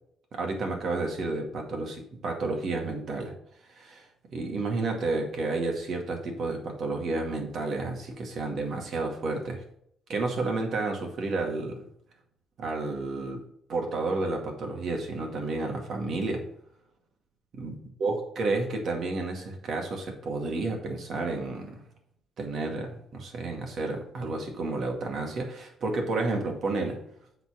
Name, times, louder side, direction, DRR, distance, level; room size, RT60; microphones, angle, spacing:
voice 1, 0.3-3.3 3.7-4.0 4.3-9.6 10.1-11.8 12.6-13.4 13.7-16.4 17.5-17.7 18.0-21.8 22.4-27.0, right 3 dB, 60° right, 2 dB, 2.1 m, -31 dB
7.9 x 4.1 x 6.2 m, 0.70 s
cardioid pair, 90°, 0 cm